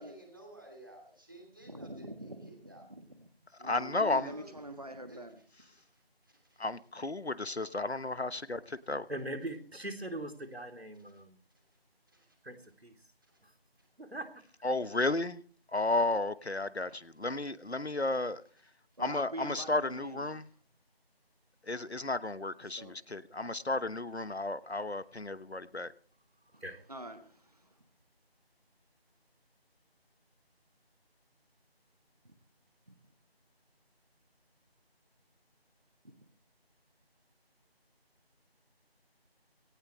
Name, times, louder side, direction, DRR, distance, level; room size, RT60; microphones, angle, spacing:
voice 1, 0.0-2.9 4.1-4.5 5.1-6.6 12.1-12.3 13.2-13.4 13.8-13.9, right 1 dB, 20° right, 2 dB, 2.9 m, -55 dB
voice 2, 1.7-3.3 3.6-5.4 19.0-20.2 22.6-23.0 26.5-26.6 26.9-27.7 32.2-32.3 32.9-33.0 36.0-36.1, right 1 dB, 40° right, 9 dB, 1.6 m, -45 dB
voice 3, 3.6-4.3 6.6-9.1 14.6-15.4 15.7-18.4 19.0-20.5 21.6-25.9, left 2 dB, 90° left, 15 dB, 1.2 m, -33 dB
voice 4, 9.1-11.4 12.4-12.9 13.4-13.5 14.0-14.4 26.6-26.8, right 1 dB, 80° right, 5 dB, 3.4 m, -41 dB
19.0 x 18.0 x 3.2 m, 0.40 s
figure-of-eight pair, 175°, 31 cm